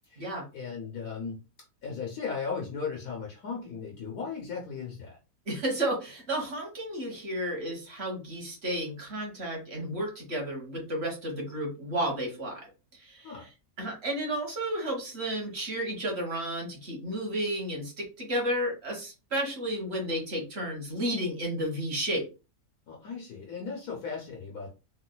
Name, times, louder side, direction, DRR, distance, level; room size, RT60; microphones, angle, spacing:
voice 1, 0.1-1.4 1.8-5.2 13.2-13.5 22.9-24.7, left 5 dB, 70° left, -1 dB, 1.3 m, -37 dB
voice 2, 5.5-12.6 13.0-13.3 13.8-22.2, right 1 dB, 40° right, -1 dB, 1.5 m, -32 dB
3.9 x 2.5 x 2.2 m, 0.30 s
omnidirectional pair, 1.8 m